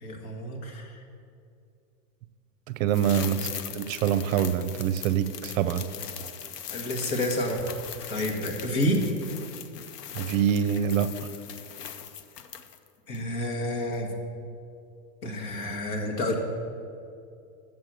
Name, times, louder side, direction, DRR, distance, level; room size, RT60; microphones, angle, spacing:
voice 1, 0.0-0.9 3.2-3.3 6.7-7.6 8.1-9.0 13.1-14.1 15.2-16.3, left 1 dB, 60° left, 1 dB, 1.8 m, -29 dB
voice 2, 2.7-5.8 10.1-11.1, right 9 dB, 60° right, 12 dB, 0.6 m, -25 dB
sound 1, 2.9-12.9 13.1-13.2, left 8 dB, 80° left, 0.8 m, -40 dB
7.2 x 6.5 x 7.5 m, 2.5 s
supercardioid pair, 150°, 47 cm